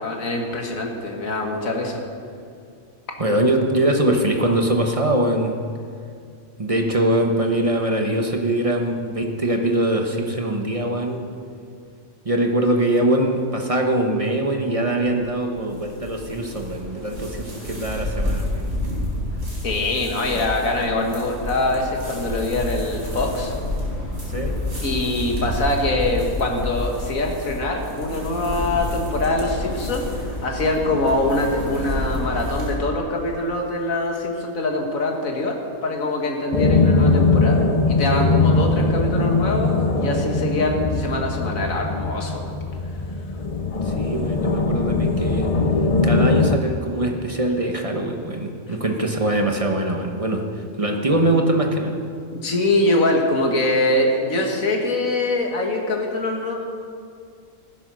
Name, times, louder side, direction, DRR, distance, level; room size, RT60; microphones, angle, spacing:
voice 1, 0.0-2.0 19.6-23.5 24.8-42.5 52.4-56.5, left 2 dB, 80° left, 1 dB, 2.1 m, -24 dB
voice 2, 3.2-5.5 6.6-11.2 12.2-18.7 20.3-20.4 24.3-24.6 43.8-45.5 46.0-52.1, right 1 dB, 30° right, 2 dB, 1.0 m, -22 dB
sound 1, 15.1-32.7, left 1 dB, 55° right, 4.4 m, -29 dB
sound 2, 36.5-46.6, left 3 dB, 40° left, 0.5 m, -20 dB
15.5 x 10.0 x 6.2 m, 2.3 s
omnidirectional pair, 1.4 m